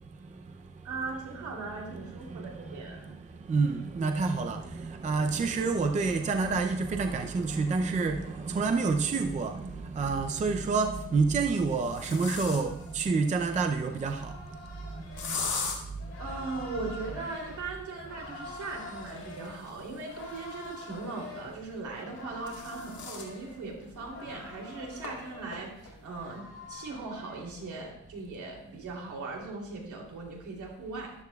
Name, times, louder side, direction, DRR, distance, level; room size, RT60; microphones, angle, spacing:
voice 1, 0.2-1.0 1.3-1.5 1.8-14.4 14.8-15.6 16.0-16.1, right 4 dB, 25° right, 5 dB, 0.5 m, -29 dB
voice 2, 0.8-3.1 16.2-31.1, right 3 dB, 70° right, -1 dB, 3.0 m, -39 dB
sound 1, 8.8-8.9 10.3-10.8 11.3-12.9 15.2-15.8 18.4-21.0 22.0-23.3 23.8-23.9 24.3-24.4 25.0-25.1 25.5-25.9, left 5 dB, 65° left, 2.0 m, -39 dB
sound 2, 12.2-28.0, left 3 dB, 45° left, 3.8 m, -47 dB
13.5 x 11.5 x 2.3 m, 0.77 s
wide cardioid pair, 160°, 31 cm